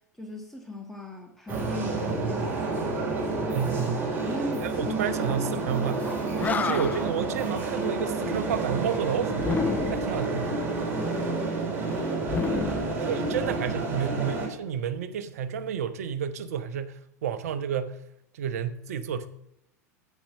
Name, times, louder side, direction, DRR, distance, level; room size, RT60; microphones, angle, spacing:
voice 1, 0.2-3.0 4.2-5.1 10.9-11.8 12.5-13.4, equal, 5° left, 1.6 m, -38 dB
sound 1, 1.5-14.5, right 3 dB, 20° right, 3.6 m, -29 dB
voice 2, 3.5-4.2 4.6-9.5 9.9-10.6 13.0-18.0 18.3-19.3, right 7 dB, 60° right, 1.0 m, -31 dB
Animal, 6.1-6.2 6.4-7.2 9.4-10.2 12.2-13.6, left 6 dB, 20° left, 0.8 m, -30 dB
10.0 x 8.3 x 5.6 m
figure-of-eight pair, 85°, 9 cm